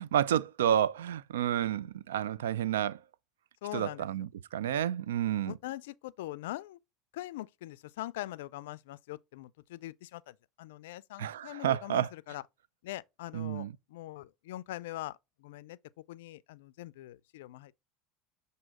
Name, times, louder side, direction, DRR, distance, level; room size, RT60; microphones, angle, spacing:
voice 1, 0.0-3.0 3.7-5.5 11.2-12.1 13.3-13.7, right 10 dB, 90° right, 0.3 m, -30 dB
voice 2, 3.6-4.1 5.5-6.8 7.1-12.4 12.8-15.8 16.1-17.7, left 16 dB, 80° left, 0.3 m, -42 dB
7.3 x 2.7 x 4.7 m
hypercardioid pair, 90°, 0 cm